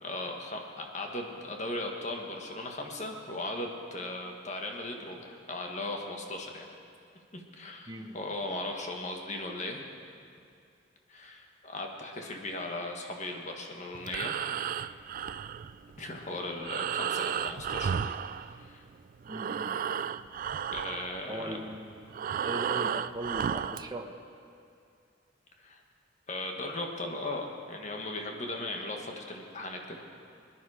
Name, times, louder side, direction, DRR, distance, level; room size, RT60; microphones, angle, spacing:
voice 1, 0.0-6.7 7.3-9.8 11.1-14.4 16.0-18.8 20.7-21.6 25.6-25.8 26.3-30.0, left 2 dB, 40° left, 2 dB, 1.5 m, -38 dB
voice 2, 7.9-8.2 19.3-19.8 21.3-22.0 22.4-24.1, right 1 dB, 20° right, 3 dB, 1.0 m, -39 dB
Breathing, 13.9-18.9 19.2-23.9, right 8 dB, 45° right, 0.3 m, -33 dB
20.5 x 10.5 x 5.0 m, 2.4 s
head